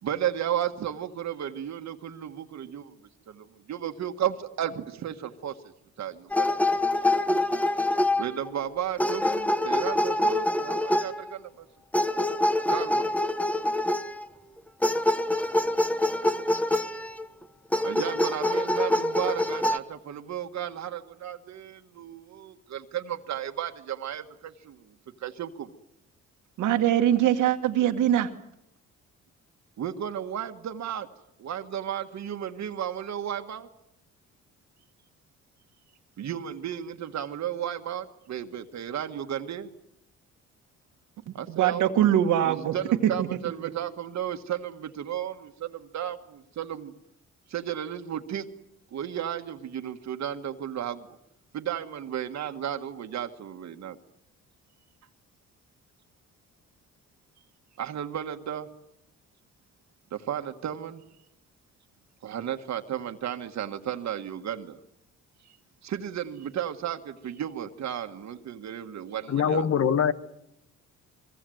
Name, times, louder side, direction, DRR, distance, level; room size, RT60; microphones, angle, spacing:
voice 1, 0.0-2.9 3.3-5.6 6.0-6.5 7.8-7.9 8.2-11.7 12.7-13.1 17.8-25.7 29.8-31.1 31.4-33.7 36.2-39.7 41.3-41.9 42.4-46.9 47.5-48.5 48.9-51.1 51.5-54.0 57.8-58.7 60.1-61.0 62.2-64.8 65.8-69.7, right 10 dB, 65° right, 1.6 m, -34 dB
sound 1, 6.3-8.6 9.0-11.3 11.9-14.2 14.8-17.3 17.7-19.8, left 1 dB, 5° left, 1.2 m, -25 dB
voice 2, 26.6-28.3 41.5-42.7 43.0-43.3, right 11 dB, 85° right, 1.7 m, -22 dB
voice 3, 69.3-70.1, left 7 dB, 55° left, 1.3 m, -23 dB
26.0 x 23.0 x 7.8 m
cardioid pair, 90°, 30 cm